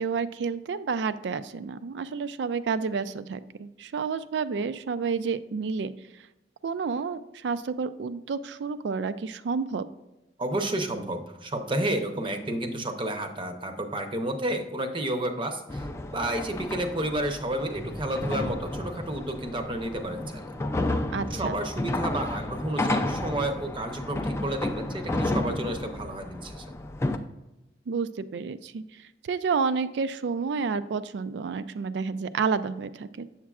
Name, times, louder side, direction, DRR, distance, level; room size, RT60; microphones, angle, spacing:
voice 1, 0.0-5.9 6.6-9.9 21.1-21.5 27.9-28.8 29.3-33.3, right 5 dB, 75° right, 14 dB, 0.4 m, -30 dB
voice 2, 10.4-15.9 16.1-20.5 21.3-26.6, right 1 dB, 30° right, 6 dB, 0.7 m, -31 dB
sound 1, 15.7-27.2, left 1 dB, 15° left, 0.3 m, -32 dB
7.4 x 7.2 x 2.4 m, 1.0 s
head